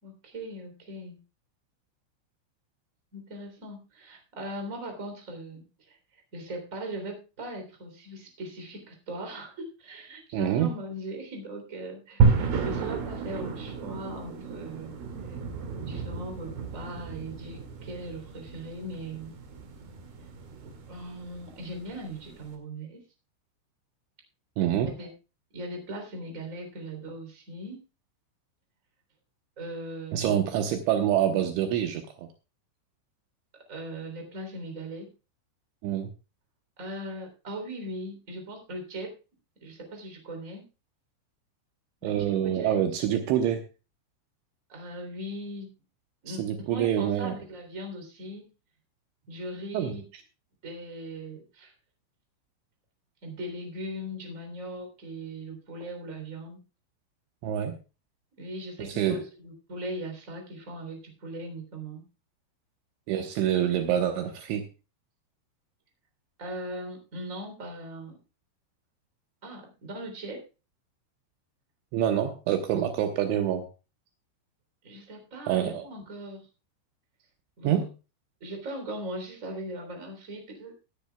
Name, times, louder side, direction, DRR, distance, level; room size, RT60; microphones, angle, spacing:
voice 1, 0.0-1.2 3.1-6.0 6.3-14.9 15.8-19.3 20.9-23.0 24.8-25.1 25.5-27.8 29.6-30.3 33.7-35.1 36.8-39.1 39.6-40.7 42.0-42.9 43.2-43.4 44.7-45.7 46.2-48.5 49.3-50.0 50.6-51.7 53.2-56.6 58.4-62.0 66.4-68.2 69.4-70.4 74.8-76.4 77.6-77.8 78.4-80.7, right 1 dB, 20° right, 3 dB, 2.9 m, -39 dB
voice 2, 10.3-10.7 24.6-24.9 30.1-32.3 35.8-36.1 42.0-43.6 46.3-47.4 49.7-50.0 57.4-57.8 58.8-59.2 63.1-64.7 71.9-73.7 75.5-75.8 77.6-77.9, right 10 dB, 75° right, 6 dB, 3.1 m, -26 dB
sound 1, 12.2-22.5, right 4 dB, 55° right, 3.7 m, -31 dB
20.0 x 10.0 x 2.3 m, 0.30 s
omnidirectional pair, 5.9 m